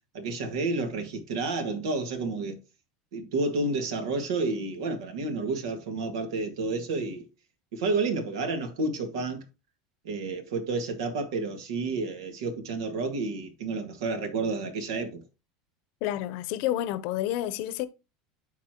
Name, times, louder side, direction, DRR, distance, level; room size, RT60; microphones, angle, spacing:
voice 1, 0.1-2.6 3.1-7.3 7.7-9.4 10.0-15.2, right 3 dB, 85° right, 2.0 m, -30 dB
voice 2, 16.0-17.9, left 13 dB, 60° left, 0.7 m, -29 dB
12.5 x 4.3 x 3.0 m
supercardioid pair, 150°, 3 cm